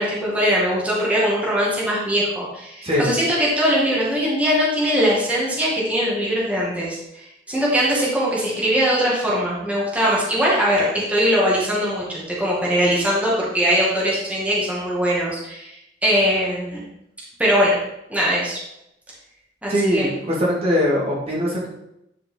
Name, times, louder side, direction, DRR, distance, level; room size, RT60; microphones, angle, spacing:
voice 1, 0.0-16.8 17.4-17.8 18.1-18.6 19.6-20.1, equal, 10° right, -6 dB, 2.1 m, -21 dB
voice 2, 19.7-21.7, equal, 35° right, -5 dB, 2.1 m, -21 dB
10.0 x 5.0 x 3.9 m, 0.84 s
head